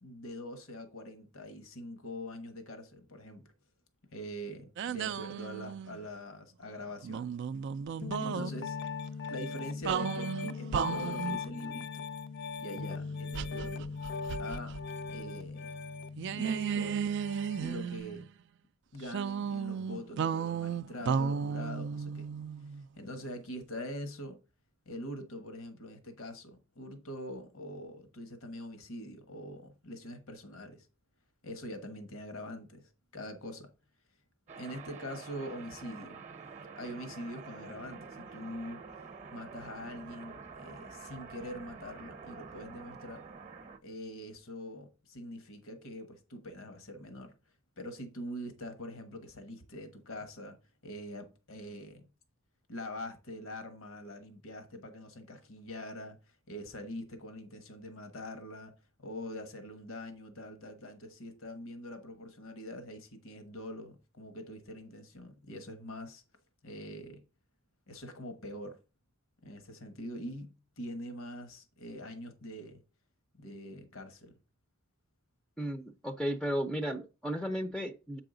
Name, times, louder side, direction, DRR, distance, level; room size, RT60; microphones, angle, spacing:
voice 1, 0.0-3.5 4.1-7.3 8.2-8.8 9.3-12.0 12.6-13.9 14.4-14.8 15.1-15.8 16.3-17.2 17.6-18.3 18.9-22.3 23.0-24.4 24.8-30.9 31.4-33.7 34.6-36.2 36.8-38.8 39.3-43.2 43.8-47.3 47.8-50.6 50.8-52.0 52.7-58.7 59.0-66.2 66.6-67.2 67.9-68.8 69.4-72.8 73.3-74.3, left 1 dB, 80° left, 1.2 m, -44 dB
sound 1, 4.8-6.1 7.0-8.5 9.8-11.4 13.3-14.8 15.1-15.2 16.2-18.3 19.1-22.8, right 7 dB, 60° right, 0.3 m, -34 dB
Piano, 8.0-17.7, left 5 dB, 55° left, 0.5 m, -39 dB
sound 2, 34.5-43.8, right 5 dB, 35° right, 0.7 m, -48 dB
voice 2, 75.6-78.2, equal, ahead, 0.5 m, -34 dB
7.7 x 4.8 x 3.8 m
head